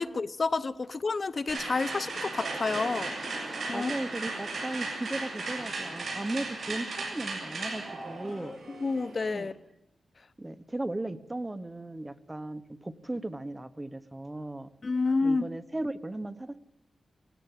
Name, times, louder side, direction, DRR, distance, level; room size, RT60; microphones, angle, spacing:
voice 1, 0.0-3.2 3.7-3.9 8.4-9.5 14.8-15.5, left 3 dB, 45° left, 0.8 m, -29 dB
sound 1, 1.5-9.4, right 3 dB, 60° right, 7.2 m, -36 dB
voice 2, 3.7-8.6 9.3-9.5 10.4-14.7 15.2-16.6, right 1 dB, 15° right, 1.1 m, -36 dB
19.0 x 16.5 x 9.1 m
wide cardioid pair, 115°, 0 cm